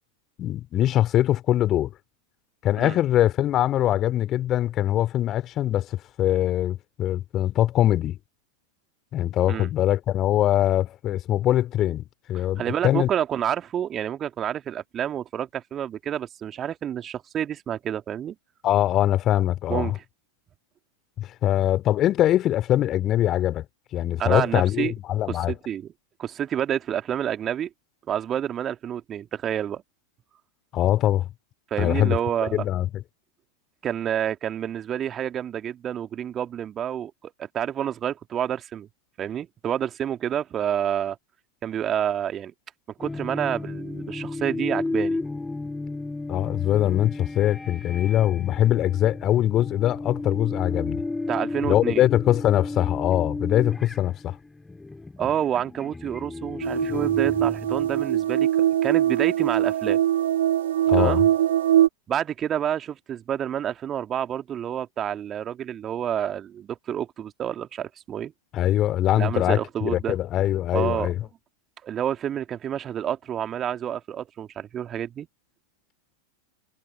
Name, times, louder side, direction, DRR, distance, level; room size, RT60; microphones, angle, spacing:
voice 1, 0.4-1.9 2.6-8.2 9.1-13.1 18.6-19.9 21.2-23.7 23.9-25.5 30.7-31.3 31.8-32.2 32.5-32.9 46.3-51.0 51.6-54.4 60.9-61.2 68.5-71.2, left 12 dB, 30° left, 2.7 m, -22 dB
voice 2, 12.6-18.4 19.7-19.9 24.2-24.9 25.3-25.9 26.2-27.7 28.1-29.8 31.7-32.7 33.8-37.1 37.4-38.9 39.2-41.2 41.6-42.5 43.0-45.2 51.3-52.1 55.2-60.0 60.9-61.2 62.1-68.3 69.2-70.2 70.7-71.1 71.8-75.3, right 9 dB, 25° right, 2.4 m, -28 dB
sound 1, 43.0-58.1, left 3 dB, 10° left, 4.2 m, -33 dB
sound 2, 56.6-61.9, right 11 dB, 60° right, 2.1 m, -22 dB
figure-of-eight pair, 90°, 0 cm